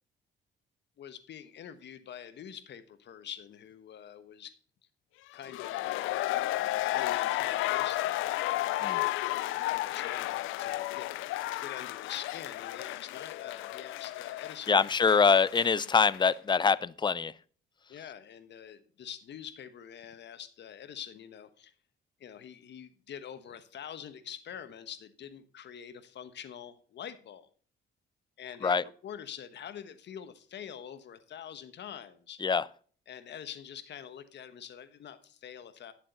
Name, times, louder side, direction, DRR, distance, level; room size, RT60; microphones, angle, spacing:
voice 1, 1.0-4.6 5.3-6.1 6.9-9.1 9.7-11.1 11.6-14.9 17.9-21.7 22.2-27.5 28.4-32.4 33.1-35.9, left 9 dB, 60° left, 11 dB, 1.2 m, -45 dB
sound 1, 5.3-16.2 16.5-16.6, left 16 dB, 90° left, 0.5 m, -33 dB
voice 2, 14.7-17.3 28.6-28.8 32.4-32.7, left 5 dB, 25° left, 20 dB, 0.5 m, -24 dB
10.5 x 7.4 x 4.0 m, 0.43 s
cardioid pair, 90°, 20 cm